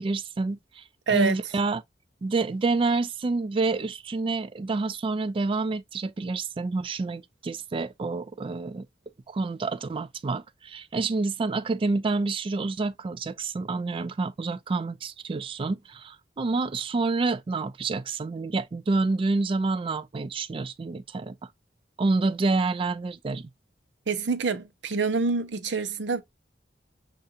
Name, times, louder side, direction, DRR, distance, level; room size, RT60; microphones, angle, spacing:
voice 1, 0.0-1.8 2.2-8.9 9.3-21.4 22.0-23.5, right 3 dB, 30° right, 0.3 m, -28 dB
voice 2, 1.1-1.4 24.1-26.2, right 4 dB, 90° right, 0.7 m, -26 dB
6.6 x 2.5 x 2.7 m
head